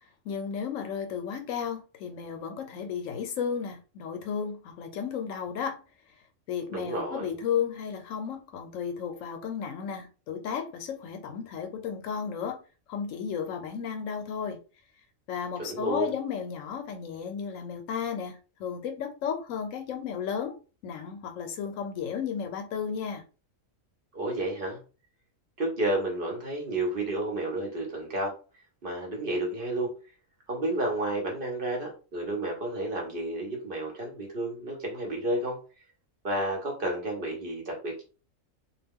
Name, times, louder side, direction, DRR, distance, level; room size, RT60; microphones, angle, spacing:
voice 1, 0.2-5.8 6.5-12.6 12.9-14.6 15.3-20.6 20.8-23.2, left 7 dB, 75° left, 1.0 m, -33 dB
voice 2, 6.7-7.3 15.6-16.1 24.1-24.8 25.6-28.3 28.8-29.9 30.5-35.6 36.2-38.0, right 1 dB, 50° right, 0.9 m, -31 dB
2.3 x 2.2 x 3.5 m
omnidirectional pair, 1.4 m